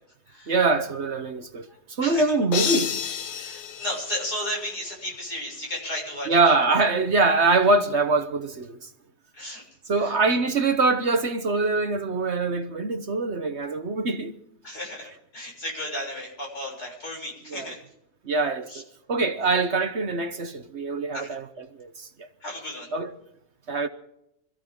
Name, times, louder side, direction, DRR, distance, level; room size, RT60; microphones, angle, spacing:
voice 1, 0.5-3.0 6.3-8.9 9.9-14.4 17.5-17.7 18.2-22.3 22.9-23.1 23.7-23.9, right 3 dB, 45° right, 1.1 m, -24 dB
sound 1, 2.5-4.8, left 8 dB, 75° left, 1.6 m, -30 dB
voice 2, 3.4-6.6 9.3-9.6 10.0-10.4 14.6-17.8 18.7-18.8 21.1-21.3 22.4-22.9, left 1 dB, 60° left, 7.4 m, -34 dB
26.0 x 14.5 x 3.6 m
omnidirectional pair, 1.9 m